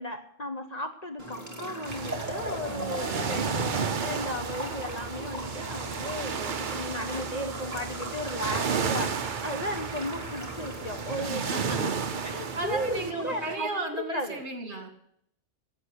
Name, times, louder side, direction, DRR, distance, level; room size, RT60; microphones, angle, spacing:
voice 1, 0.0-11.9 12.2-14.4, left 1 dB, 35° left, 5 dB, 1.2 m, -35 dB
sound 1, 1.2-13.5, equal, 15° right, 2.6 m, -39 dB
sound 2, 1.9-13.1, right 6 dB, 45° right, 0.8 m, -33 dB
voice 2, 2.7-3.7 11.2-11.9 12.3-14.9, right 2 dB, 60° right, 5 dB, 2.3 m, -35 dB
11.5 x 8.3 x 9.9 m, 0.72 s
omnidirectional pair, 1.3 m